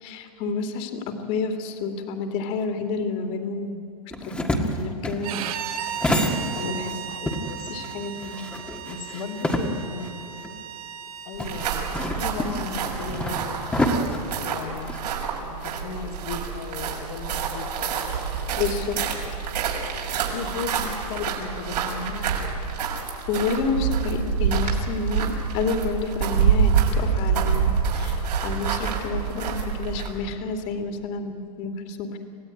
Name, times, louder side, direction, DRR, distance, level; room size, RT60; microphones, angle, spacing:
voice 1, 0.0-3.8 4.2-5.5 6.6-6.9 7.7-8.4 18.6-19.0 23.3-32.2, left 4 dB, 35° left, 6 dB, 2.6 m, -29 dB
sound 1, 4.1-6.9 7.3-10.1 10.4-10.5 11.4-15.0, left 1 dB, 5° left, 1.7 m, -28 dB
Bowed string instrument, 5.2-12.0, right 9 dB, 60° right, 2.3 m, -35 dB
voice 2, 6.5-7.7 8.9-10.6 11.2-13.7 14.4-18.5 20.3-22.4, left 5 dB, 55° left, 2 dB, 2.8 m, -36 dB
sound 2, 11.3-30.2, right 6 dB, 85° right, 6.3 m, -27 dB
27.0 x 16.5 x 9.8 m, 2.6 s
hypercardioid pair, 150°, 20 cm